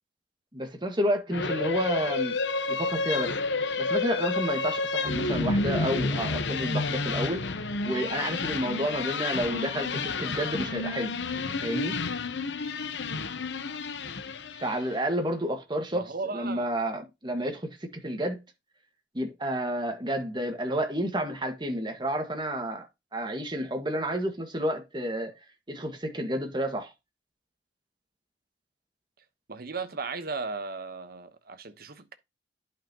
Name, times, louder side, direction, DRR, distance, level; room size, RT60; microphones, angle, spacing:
voice 1, 0.5-2.4 2.7-7.5 7.8-11.1 11.6-12.0 14.6-16.1 16.3-18.4 19.1-22.9 23.1-25.3 25.7-26.9, equal, 25° right, 1.7 m, -30 dB
sound 1, 1.3-14.9, left 3 dB, 75° left, 0.9 m, -30 dB
voice 2, 15.9-16.7 29.5-32.1, right 4 dB, 55° right, 1.1 m, -36 dB
11.5 x 5.7 x 2.9 m
head